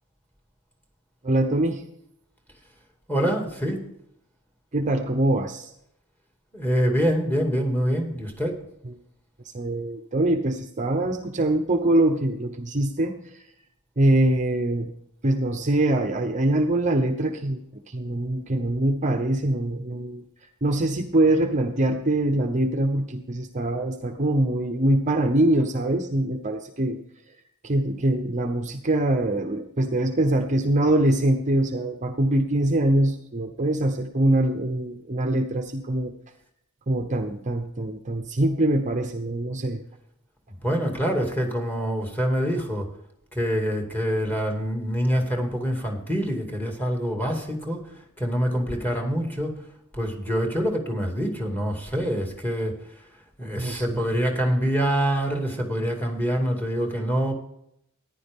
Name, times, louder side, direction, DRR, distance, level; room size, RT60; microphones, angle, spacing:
voice 1, 1.2-1.8 4.7-5.7 9.5-13.4 14.0-14.9 15.2-17.6 17.9-20.2 20.6-27.0 27.6-36.1 36.9-39.8 53.6-54.1, right 1 dB, 35° right, 6 dB, 0.8 m, -23 dB
voice 2, 3.1-3.8 6.5-8.6 40.6-42.9 43.3-47.9 48.2-49.5 49.9-52.8 53.4-57.3, equal, 10° left, 2 dB, 2.3 m, -25 dB
14.5 x 10.5 x 3.6 m, 0.75 s
head